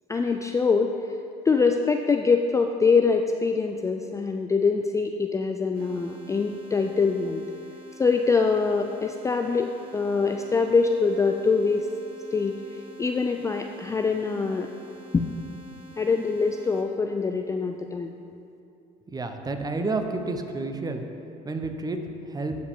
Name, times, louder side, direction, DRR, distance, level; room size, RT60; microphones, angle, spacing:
voice 1, 0.1-0.9 1.5-7.4 8.0-11.9 12.3-12.5 13.0-14.7 15.1-15.3 16.0-18.2, left 4 dB, 15° left, 4 dB, 0.3 m, -24 dB
sound 1, 5.7-16.8, equal, 55° right, 1.3 m, -47 dB
voice 2, 19.1-21.0 21.4-22.6, right 3 dB, 20° right, 6 dB, 0.8 m, -30 dB
14.0 x 4.9 x 3.7 m, 2.6 s
supercardioid pair, 90°, 18 cm